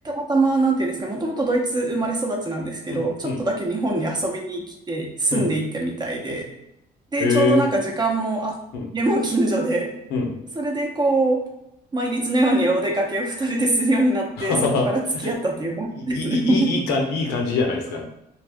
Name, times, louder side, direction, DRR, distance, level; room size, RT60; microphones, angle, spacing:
voice 1, 0.0-6.5 7.1-8.6 8.9-9.9 10.6-11.4 11.9-16.7, right 2 dB, 25° right, 0 dB, 0.7 m, -23 dB
voice 2, 2.9-3.4 5.3-5.5 7.2-7.6 8.7-8.9 10.1-10.3 14.4-14.9 15.1-15.3 16.0-18.0, left 4 dB, 80° left, 2 dB, 0.7 m, -24 dB
2.6 x 2.4 x 3.4 m, 0.85 s
cardioid pair, 110°, 17 cm